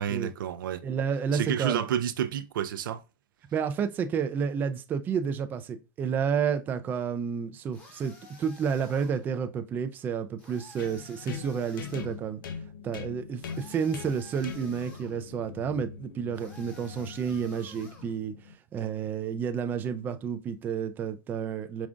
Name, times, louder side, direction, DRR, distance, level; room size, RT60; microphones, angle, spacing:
voice 1, 0.0-0.8 1.3-3.0, right 9 dB, 80° right, 0.4 m, -30 dB
voice 2, 0.8-1.8 3.5-8.1 8.4-12.4 12.8-18.3 18.7-21.9, right 7 dB, 15° right, 0.3 m, -30 dB
sound 1, 7.7-9.3 10.4-12.2 13.4-15.2 16.3-18.2, left 2 dB, 15° left, 1.0 m, -52 dB
sound 2, 10.8-18.6, left 6 dB, 75° left, 0.6 m, -42 dB
5.0 x 2.3 x 2.4 m
supercardioid pair, 145°, 11 cm